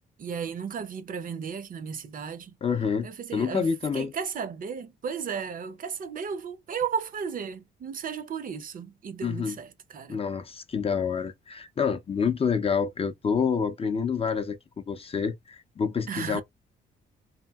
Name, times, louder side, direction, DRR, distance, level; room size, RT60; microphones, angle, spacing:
voice 1, 0.2-2.6 3.0-10.2 16.1-16.4, right 6 dB, 45° right, 0.5 m, -34 dB
voice 2, 2.6-4.1 9.2-9.6 10.1-16.4, left 6 dB, 30° left, 0.4 m, -28 dB
2.8 x 2.6 x 2.3 m
cardioid pair, 90°, 20 cm